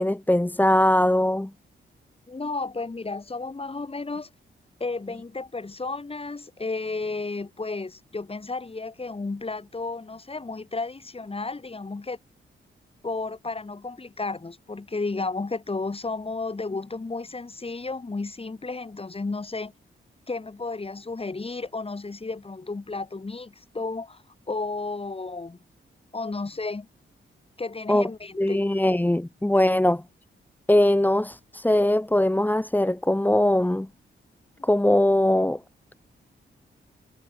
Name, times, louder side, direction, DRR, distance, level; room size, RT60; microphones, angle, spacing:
voice 1, 0.0-1.5 27.9-28.1 28.4-30.0 30.7-33.9 34.6-35.6, left 1 dB, 10° left, 1.7 m, -21 dB
voice 2, 2.3-4.3 4.8-12.2 13.0-19.7 20.3-24.2 24.5-25.6 26.1-26.9 27.6-28.7 34.6-34.7, left 3 dB, 30° left, 6.7 m, -33 dB
cardioid pair, 100°, 20 cm